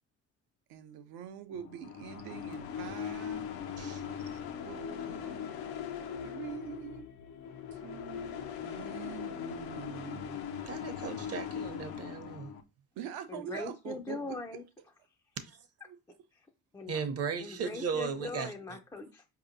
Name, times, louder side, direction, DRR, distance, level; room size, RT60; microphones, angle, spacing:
voice 1, 0.7-3.5 4.6-5.5 6.2-7.1 7.7-10.4 13.0-14.4 15.8-16.0, right 9 dB, 75° right, 0.7 m, -44 dB
sound 1, 1.5-12.6, left 8 dB, 85° left, 0.7 m, -40 dB
voice 2, 10.7-12.5 15.5-15.6 16.9-18.5, right 6 dB, 40° right, 0.6 m, -36 dB
voice 3, 13.3-14.6 16.3-17.0 17.4-19.3, left 3 dB, 10° left, 0.3 m, -41 dB
4.7 x 2.8 x 2.6 m
cardioid pair, 100°, 37 cm